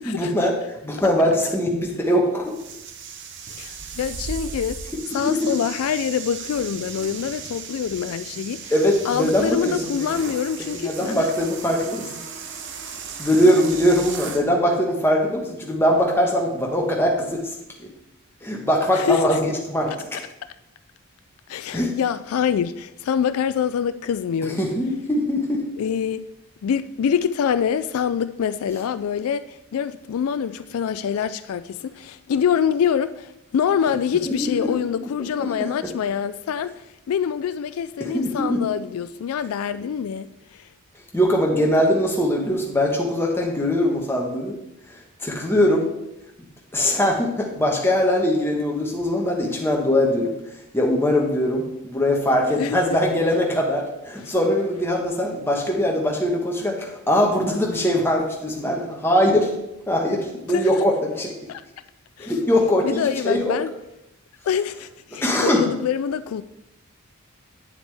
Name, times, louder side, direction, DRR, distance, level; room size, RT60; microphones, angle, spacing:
voice 1, 0.0-2.5 5.1-5.5 8.7-9.8 10.7-12.2 13.2-17.5 17.8-17.9 18.4-20.2 21.7-22.0 24.4-25.6 34.3-34.7 35.2-35.7 38.0-38.6 41.1-44.6 44.9-45.9 46.7-50.4 50.7-59.5 59.9-61.3 62.2-63.5 65.2-65.7, left 1 dB, 10° left, 1.3 m, -21 dB
sound 1, 2.4-14.5, right 5 dB, 55° right, 0.8 m, -36 dB
voice 2, 3.5-4.8 5.1-8.7 9.0-11.3 13.4-13.6 18.9-19.4 21.5-24.6 25.8-26.3 26.6-40.7 52.6-53.0 54.3-54.4 60.5-60.8 61.5-61.6 62.2-62.3 62.8-63.7 64.5-66.4, left 8 dB, 75° left, 0.3 m, -25 dB
9.2 x 7.0 x 3.4 m
head